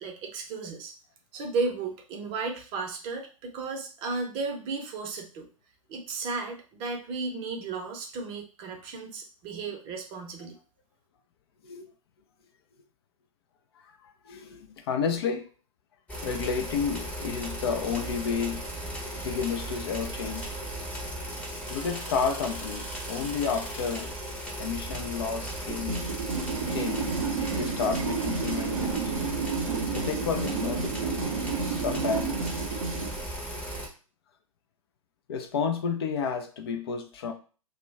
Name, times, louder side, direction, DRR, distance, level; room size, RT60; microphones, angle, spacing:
voice 1, 0.0-0.9 1.3-5.5 5.9-10.6, right 4 dB, 30° right, 2 dB, 0.6 m, -34 dB
voice 2, 14.0-15.5 16.2-18.9 19.2-20.5 21.7-24.2 24.6-26.0 26.7-29.2 29.9-31.2 31.6-32.3 35.3-37.3, left 6 dB, 45° left, 5 dB, 0.4 m, -31 dB
sound 1, 16.1-33.9, right 1 dB, 10° left, 0.7 m, -36 dB
sound 2, 25.7-33.2, right 5 dB, 65° right, 0.7 m, -31 dB
2.2 x 2.1 x 3.3 m, 0.37 s
figure-of-eight pair, 105°, 18 cm